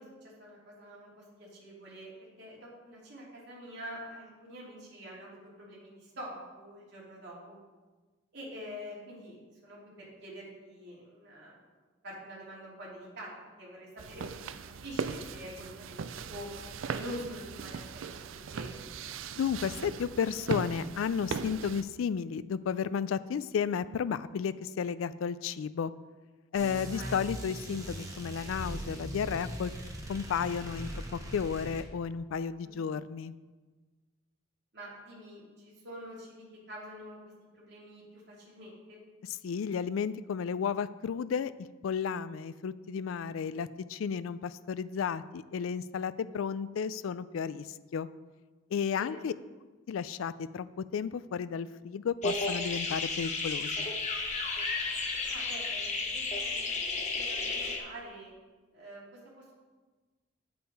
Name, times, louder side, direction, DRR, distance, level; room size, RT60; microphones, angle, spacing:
voice 1, 0.0-7.6 8.3-11.6 12.0-13.3 13.6-14.5 14.8-16.5 16.9-18.1 18.3-18.8 26.9-27.2 32.6-32.7 34.7-37.2 37.5-39.0 49.0-49.2 55.2-56.6 57.1-58.3 58.7-59.5, equal, 55° right, -6 dB, 3.1 m, -46 dB
sound 1, 14.0-21.8, right 5 dB, 80° right, 0.4 m, -39 dB
voice 2, 19.4-25.9 26.5-29.7 30.1-33.3 39.4-47.7 47.9-48.1 48.7-49.3 49.9-50.7 50.9-53.7, left 7 dB, 85° left, 15 dB, 0.3 m, -33 dB
sound 2, 26.5-31.9, equal, 15° right, 1.2 m, -40 dB
sound 3, 52.2-57.8, left 3 dB, 35° left, 1.1 m, -33 dB
8.3 x 8.0 x 4.7 m, 1.3 s
head